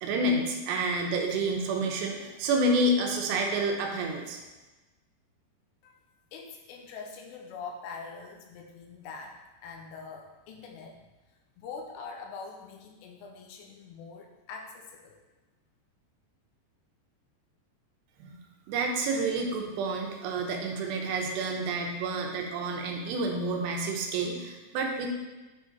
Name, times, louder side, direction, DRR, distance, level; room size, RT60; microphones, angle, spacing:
voice 1, 0.0-4.4 18.2-18.4 18.7-25.1, right 2 dB, 80° right, 1 dB, 3.0 m, -29 dB
voice 2, 6.3-11.0 11.6-15.2, left 5 dB, 85° left, 1 dB, 2.9 m, -43 dB
8.8 x 3.8 x 3.9 m, 1.1 s
omnidirectional pair, 5.0 m